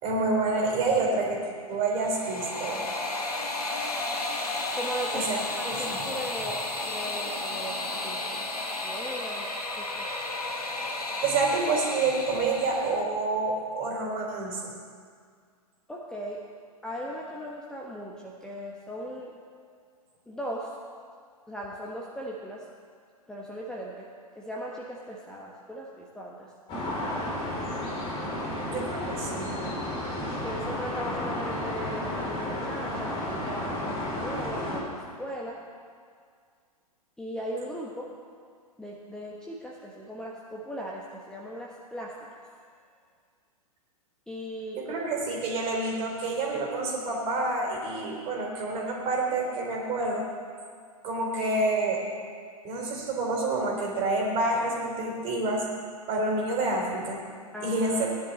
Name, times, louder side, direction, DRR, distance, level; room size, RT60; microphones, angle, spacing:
voice 1, 0.0-2.9 5.1-6.0 11.2-14.7 28.7-29.5 44.9-50.2 51.0-52.0 52.6-55.7 56.1-57.2 57.6-58.1, right 2 dB, 30° right, -1 dB, 3.8 m, -28 dB
sound 1, 1.9-13.0, left 2 dB, 85° left, 1.5 m, -33 dB
voice 2, 4.7-5.3 5.6-8.5 8.8-9.5 9.8-10.1 15.9-16.4 16.8-19.4 20.3-20.7 21.5-22.6 23.3-24.1 24.3-26.5 30.4-35.6 37.2-38.1 38.8-42.2 44.3-44.9 57.5-58.0, equal, 5° left, -3 dB, 1.3 m, -38 dB
sound 2, 26.7-34.8, left 1 dB, 30° left, 4.4 m, -32 dB
19.0 x 10.5 x 4.1 m, 2.1 s
figure-of-eight pair, 110°, 19 cm